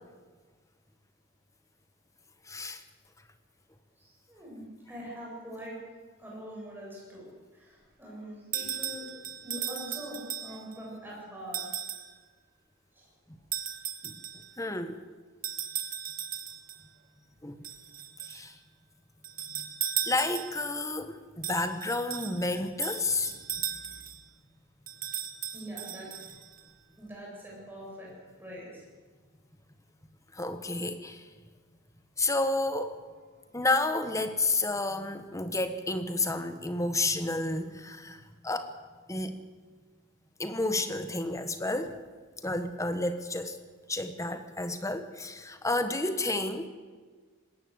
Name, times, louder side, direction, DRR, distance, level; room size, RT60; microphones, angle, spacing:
voice 1, 2.5-2.8 14.0-14.1 14.6-15.0 17.4-17.6 18.3-18.5 19.5-19.8 20.0-23.3 30.3-31.2 32.2-33.0 33.5-38.7 39.1-39.4 40.4-42.0 42.4-43.6 43.9-46.7, left 2 dB, 15° left, 9 dB, 1.4 m, -31 dB
voice 2, 4.0-5.8 6.2-11.7 12.9-13.1 20.0-20.1 22.3-22.4 23.2-23.3 23.8-23.9 25.5-26.1 27.0-28.1 28.4-28.8, equal, 10° right, -4 dB, 7.7 m, -43 dB
sound 1, 8.5-10.8 11.5-12.1 13.5-14.5 15.4-16.8 17.6-18.5 19.2-20.7 21.4-24.2 24.9-26.6, right 9 dB, 45° right, 1.6 m, -36 dB
20.0 x 17.5 x 8.3 m, 1.5 s
head